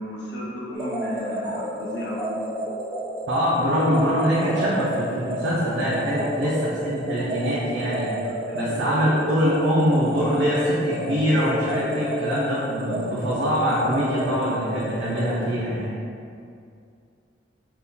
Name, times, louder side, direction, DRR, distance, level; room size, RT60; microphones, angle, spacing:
voice 1, 0.0-2.5 6.2-6.4 8.3-9.1, equal, 60° left, -5 dB, 0.5 m, -34 dB
sound 1, 0.7-15.4, right 1 dB, 25° right, 0.6 m, -31 dB
voice 2, 3.3-8.1 8.5-15.9, equal, 70° right, -7 dB, 0.5 m, -23 dB
2.7 x 2.4 x 3.6 m, 2.4 s
head